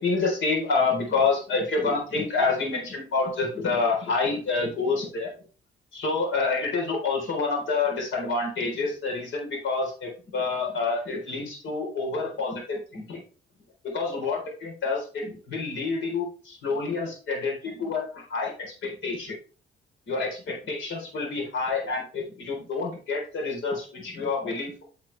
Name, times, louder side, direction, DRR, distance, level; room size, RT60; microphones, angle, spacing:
voice 1, 0.0-5.3 5.9-13.2 13.8-19.3 20.1-24.8, left 4 dB, 75° left, 0 dB, 4.1 m, -28 dB
9.8 x 5.9 x 3.4 m, 0.38 s
cardioid pair, 90°, 20 cm